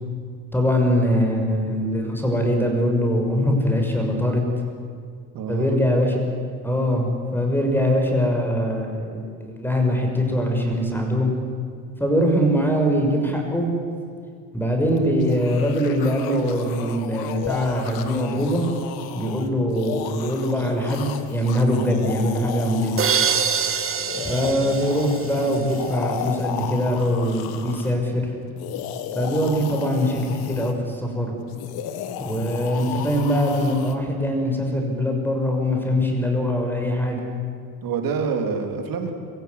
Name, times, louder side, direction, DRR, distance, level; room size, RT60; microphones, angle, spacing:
voice 1, 0.5-4.4 5.5-6.2 6.6-11.3 12.0-13.7 14.5-18.6 19.1-23.0 24.2-28.3 29.1-31.4 32.2-37.2, equal, 5° left, 2 dB, 6.1 m, -22 dB
voice 2, 5.3-5.7 19.2-19.4 24.5-24.8 37.8-39.1, right 5 dB, 70° right, 4 dB, 3.6 m, -27 dB
sound 1, 15.0-23.5 24.0-28.0 28.5-30.7 31.5-34.0, left 9 dB, 85° left, 1.8 m, -34 dB
sound 2, 23.0-25.8, right 6 dB, 35° right, 2.1 m, -25 dB
24.0 x 15.5 x 9.7 m, 2.2 s
cardioid pair, 95°, 36 cm